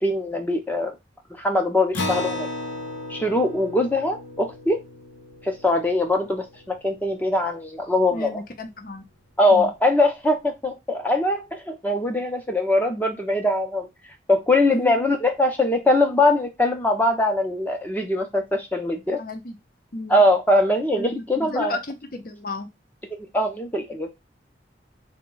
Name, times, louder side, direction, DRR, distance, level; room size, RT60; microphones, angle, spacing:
voice 1, 0.0-0.9 1.4-2.5 3.1-4.8 5.4-8.4 9.4-13.9 14.3-19.2 20.1-21.8 23.1-24.1, left 1 dB, 10° left, 3 dB, 0.6 m, -22 dB
Acoustic guitar, 1.9-6.8, left 2 dB, 80° left, 0.7 m, -34 dB
voice 2, 8.1-9.0 9.5-9.7 14.7-15.1 19.2-19.6 19.9-20.2 20.9-22.7, left 2 dB, 50° left, 7 dB, 0.7 m, -33 dB
3.9 x 2.2 x 3.8 m, 0.21 s
head